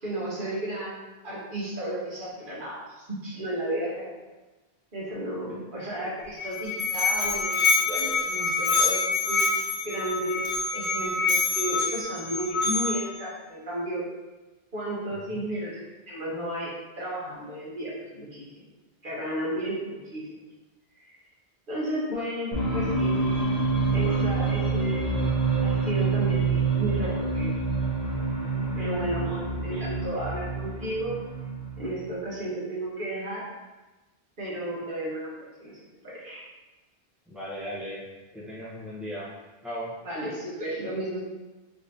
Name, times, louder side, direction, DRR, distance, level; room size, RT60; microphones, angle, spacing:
voice 1, 0.0-4.1 4.9-9.5 9.8-10.4 10.7-14.1 14.7-18.5 19.0-20.3 21.0-21.1 21.7-23.2 23.9-25.1 25.6-27.6 28.7-31.2 31.8-33.4 34.4-35.3 35.6-36.5 40.0-41.3, right 1 dB, 55° right, -6 dB, 1.2 m, -33 dB
Musical instrument, 6.2-13.2, left 4 dB, 80° left, 0.9 m, -26 dB
sound 1, 22.5-32.1, right 3 dB, 40° left, 0.8 m, -27 dB
voice 2, 37.3-38.0 38.3-39.3 39.6-39.9, equal, ahead, -8 dB, 0.8 m, -36 dB
3.4 x 2.8 x 2.7 m, 1.1 s
omnidirectional pair, 1.1 m